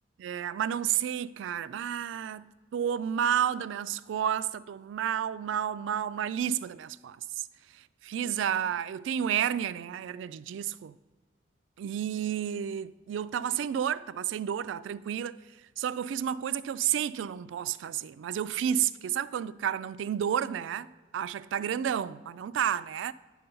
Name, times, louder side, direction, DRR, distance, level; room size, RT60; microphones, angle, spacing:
voice 1, 0.2-7.5 7.7-11.0 11.8-15.4 15.8-23.1, right 9 dB, 75° right, 0.3 m, -31 dB
10.0 x 5.6 x 5.4 m
head